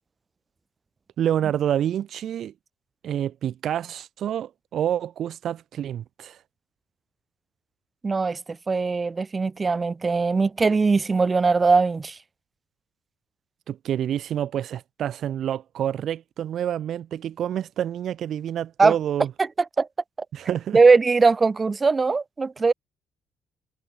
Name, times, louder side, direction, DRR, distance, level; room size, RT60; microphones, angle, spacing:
voice 1, 1.2-2.5 3.0-6.4 13.7-19.3 20.3-20.8, right 10 dB, 60° right, 0.7 m, -28 dB
voice 2, 8.0-8.4 8.7-12.1 18.8-18.9 19.8-19.9 20.7-22.7, right 4 dB, 30° right, 1.3 m, -20 dB
hypercardioid pair, 50°, 0 cm